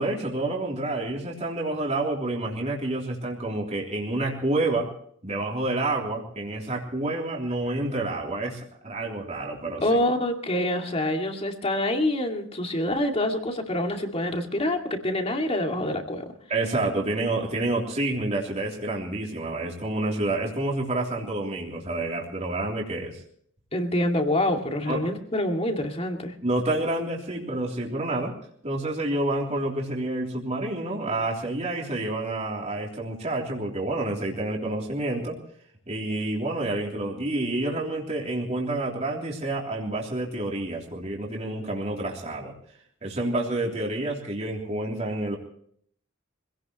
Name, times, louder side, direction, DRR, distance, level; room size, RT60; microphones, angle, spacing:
voice 1, 0.0-4.9 5.2-9.8 16.5-23.2 24.9-25.1 26.4-28.3 28.6-35.4 35.9-42.5 43.0-45.4, right 2 dB, 35° right, -2 dB, 3.3 m, -28 dB
voice 2, 9.8-16.3 23.7-26.3, left 1 dB, 30° left, 3 dB, 2.4 m, -26 dB
25.5 x 17.5 x 3.1 m, 0.63 s
head